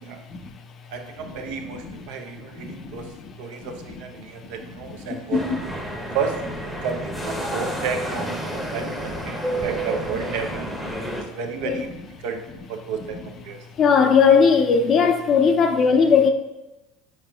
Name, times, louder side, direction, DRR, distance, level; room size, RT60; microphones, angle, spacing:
voice 1, 0.9-5.4 6.1-6.4 6.8-10.7 11.2-12.4 12.7-13.2 13.4-13.6, right 6 dB, 70° right, 0.5 m, -32 dB
voice 2, 2.6-3.0 5.1-5.6 11.6-11.8 13.8-16.3, left 6 dB, 45° left, 0.4 m, -18 dB
sound 1, 5.3-11.2, right 1 dB, ahead, 0.7 m, -30 dB
4.7 x 4.3 x 2.3 m
hypercardioid pair, 80°, 0 cm